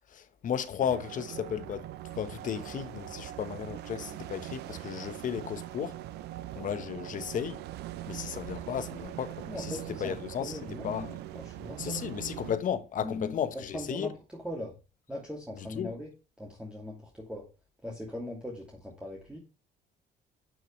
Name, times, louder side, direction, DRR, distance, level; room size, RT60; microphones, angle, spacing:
voice 1, 0.1-1.9 2.1-6.0 6.5-7.6 8.1-9.7 10.0-10.6 10.8-11.1 11.8-14.1 15.6-15.9, left 8 dB, 50° left, 1.2 m, -34 dB
sound 1, 0.8-12.6, right 14 dB, 80° right, 0.7 m, -42 dB
voice 2, 9.5-10.1 10.4-12.0 13.0-14.8 15.1-16.1 16.4-17.4 17.8-19.4, left 1 dB, 5° right, 2.7 m, -40 dB
10.5 x 6.5 x 3.3 m
cardioid pair, 110°, 17 cm